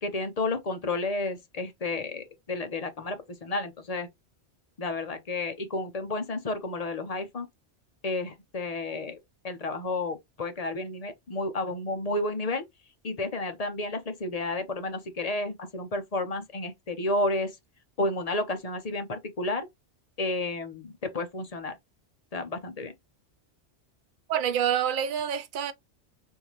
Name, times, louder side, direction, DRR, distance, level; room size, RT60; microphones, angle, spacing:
voice 1, 0.0-4.1 4.8-7.5 8.0-9.2 9.4-12.6 13.0-17.5 18.0-19.7 20.2-21.7 22.3-22.9, left 2 dB, 40° left, 0.6 m, -31 dB
voice 2, 24.3-25.7, right 9 dB, 60° right, 0.6 m, -27 dB
3.6 x 2.6 x 2.9 m
omnidirectional pair, 1.2 m